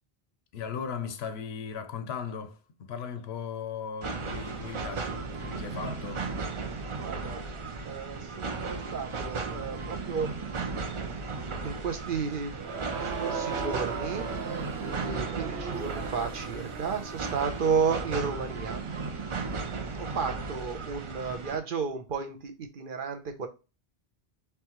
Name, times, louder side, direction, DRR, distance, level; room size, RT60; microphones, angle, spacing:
voice 1, 0.5-6.3, left 6 dB, 80° left, 0.9 m, -37 dB
sound 1, 4.0-21.6, right 4 dB, 40° right, 0.4 m, -36 dB
voice 2, 7.0-7.4 7.8-10.4 11.6-12.6 13.0-18.8 19.9-23.5, right 5 dB, 60° right, 0.8 m, -33 dB
Crowd, 12.5-17.5, right 6 dB, 80° right, 1.0 m, -37 dB
4.5 x 3.4 x 2.9 m
omnidirectional pair, 1.1 m